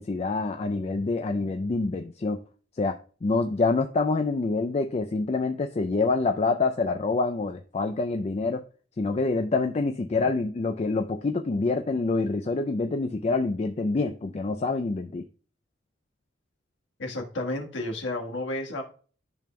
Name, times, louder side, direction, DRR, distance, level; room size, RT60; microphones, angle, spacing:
voice 1, 0.0-2.4 2.8-8.6 9.0-15.3, left 3 dB, 35° left, 6 dB, 0.4 m, -26 dB
voice 2, 17.0-18.8, left 1 dB, 85° left, 2 dB, 1.4 m, -31 dB
12.0 x 5.2 x 2.2 m, 0.40 s
head